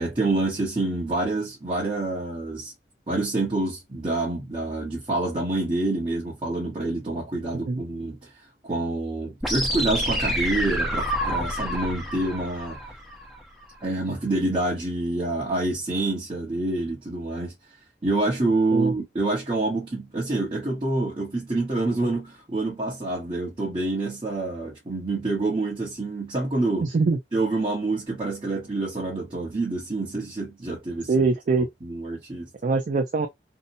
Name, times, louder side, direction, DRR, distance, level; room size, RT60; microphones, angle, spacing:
voice 1, 0.0-2.7 3.1-8.3 8.6-12.8 13.8-17.5 18.0-26.9 27.3-31.2 31.8-32.5, right 2 dB, 30° right, 0.9 m, -27 dB
sound 1, 9.4-13.4, equal, ahead, 0.7 m, -28 dB
voice 2, 26.8-27.2 31.1-31.7 32.6-33.3, right 4 dB, 45° right, 0.4 m, -22 dB
2.8 x 2.1 x 2.6 m
head